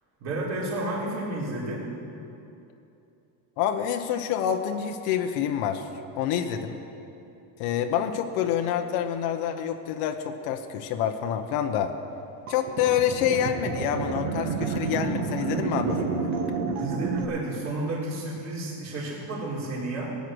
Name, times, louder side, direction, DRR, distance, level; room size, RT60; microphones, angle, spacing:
voice 1, 0.2-1.9 16.8-20.1, right 2 dB, 40° right, -6 dB, 3.7 m, -31 dB
voice 2, 3.6-5.9 6.2-6.8 7.6-11.9 12.5-16.3, left 9 dB, 85° left, 5 dB, 1.0 m, -27 dB
sound 1, 12.5-17.2, right 5 dB, 55° right, 1.5 m, -29 dB
18.0 x 9.3 x 6.3 m, 2.8 s
cardioid pair, 150°, 43 cm